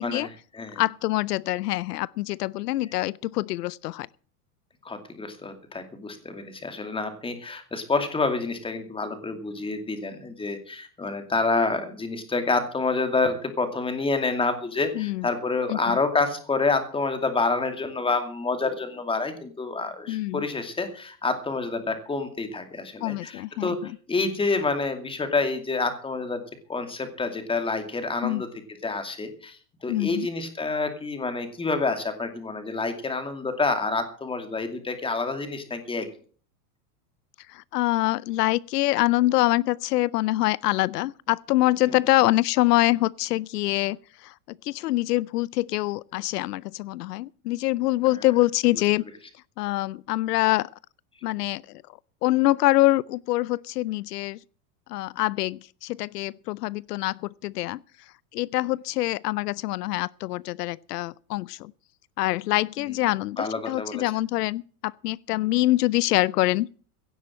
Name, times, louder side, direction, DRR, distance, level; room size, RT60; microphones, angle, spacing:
voice 1, 0.0-0.8 4.8-26.4 26.7-28.5 28.8-29.6 29.8-36.1 41.9-42.0 63.4-64.0, left 3 dB, 10° left, 2.5 m, -28 dB
voice 2, 0.8-4.1 14.9-15.3 15.7-16.0 20.1-20.4 23.0-23.9 28.2-28.4 29.9-30.3 37.5-49.0 49.6-50.7 51.2-51.8 52.2-54.4 54.9-57.8 58.3-61.7 62.2-66.7, left 17 dB, 90° left, 0.6 m, -25 dB
16.5 x 7.4 x 7.6 m
supercardioid pair, 135°, 46 cm